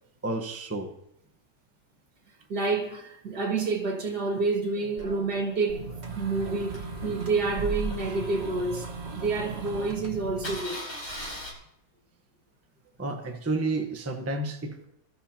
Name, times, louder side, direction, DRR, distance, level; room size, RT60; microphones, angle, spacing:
voice 1, 0.2-0.9 13.0-14.8, right 2 dB, 10° right, 0.9 m, -31 dB
voice 2, 2.5-8.9 9.1-10.8 11.1-11.4, right 3 dB, 70° right, 2.5 m, -29 dB
Engine starting, 5.0-9.2 9.6-9.7 9.9-10.1 10.4-11.5, left 1 dB, 70° left, 5.8 m, -41 dB
sound 1, 5.7-10.5, right 3 dB, 40° right, 1.7 m, -36 dB
22.5 x 13.5 x 2.9 m
omnidirectional pair, 1.8 m